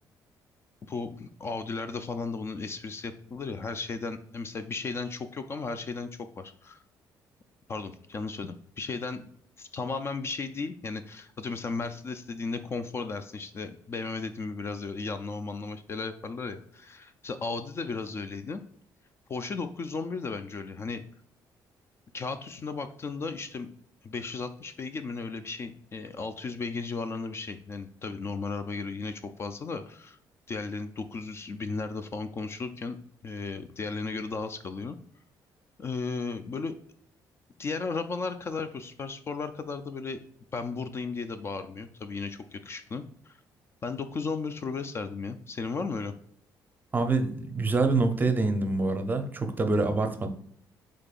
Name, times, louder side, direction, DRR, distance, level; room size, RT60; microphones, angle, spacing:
voice 1, 0.9-6.1 6.4-6.8 7.7-9.2 9.6-18.6 19.3-21.0 22.1-23.7 24.0-30.2 30.5-33.0 33.2-35.0 35.8-36.8 37.6-40.2 40.5-43.4 43.8-46.1, left 4 dB, 35° left, 10 dB, 0.4 m, -35 dB
voice 2, 46.9-50.3, right 3 dB, 25° right, 7 dB, 0.6 m, -26 dB
5.1 x 3.8 x 2.4 m, 0.63 s
cardioid pair, 125°, 8 cm